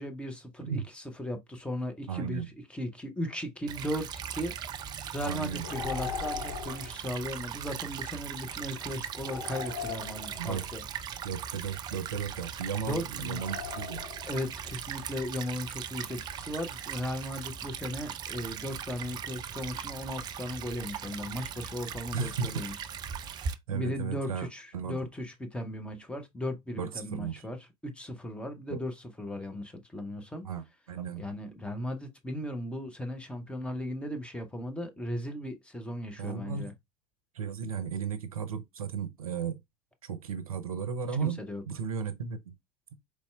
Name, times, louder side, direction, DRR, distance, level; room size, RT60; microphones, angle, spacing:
voice 1, 0.0-2.4 2.7-4.5 5.1-10.8 12.8-13.4 14.2-22.8 23.7-27.6 27.8-30.5 31.2-36.7 41.2-41.6, left 1 dB, 5° left, 0.7 m, -37 dB
voice 2, 2.1-2.5 5.2-5.7 10.4-10.6 11.2-14.0 22.1-22.7 23.7-24.5 24.7-25.0 26.8-27.4 28.7-28.8 30.4-31.2 36.2-36.7 37.4-39.6 40.0-41.4 41.7-42.5, right 6 dB, 75° right, 0.6 m, -34 dB
Stream / Trickle dribble, 3.7-23.5, right 8 dB, 25° right, 0.3 m, -39 dB
sound 1, 5.6-7.0 9.2-10.6 13.3-14.5, left 6 dB, 75° left, 0.5 m, -38 dB
4.1 x 3.2 x 2.2 m
figure-of-eight pair, 80°, 19 cm